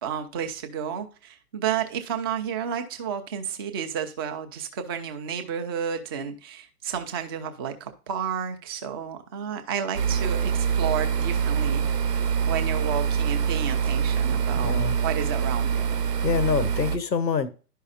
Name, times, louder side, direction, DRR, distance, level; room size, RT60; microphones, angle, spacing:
voice 1, 0.0-15.9, right 8 dB, 15° right, 6 dB, 0.5 m, -31 dB
sound 1, 9.9-17.0, right 7 dB, 70° right, 1.0 m, -25 dB
voice 2, 14.6-15.0 16.2-17.5, left 6 dB, 85° left, 14 dB, 1.0 m, -26 dB
11.5 x 5.5 x 2.4 m, 0.36 s
figure-of-eight pair, 120°, 49 cm